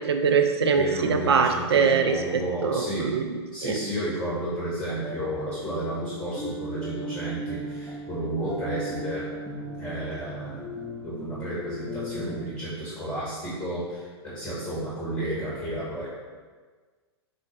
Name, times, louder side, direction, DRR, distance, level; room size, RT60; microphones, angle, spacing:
voice 1, 0.0-2.1 2.6-3.7, right 5 dB, 65° right, 6 dB, 0.4 m, -23 dB
voice 2, 0.7-3.2 3.5-9.2 9.8-10.7 11.0-16.1, right 1 dB, 25° left, -8 dB, 1.2 m, -32 dB
sound 1, 5.0-12.4, equal, 5° left, 0.6 m, -37 dB
5.3 x 2.0 x 3.2 m, 1.4 s
figure-of-eight pair, 100°, 14 cm